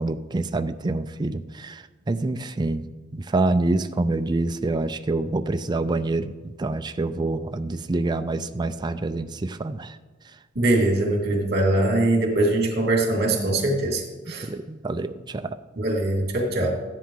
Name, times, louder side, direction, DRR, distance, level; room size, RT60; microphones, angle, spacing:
voice 1, 0.0-2.9 3.1-9.9 14.4-15.6, right 2 dB, 20° right, 9 dB, 0.4 m, -26 dB
voice 2, 10.6-14.5 15.8-16.7, right 2 dB, 55° right, 1 dB, 2.4 m, -22 dB
14.0 x 10.0 x 3.8 m, 1.3 s
head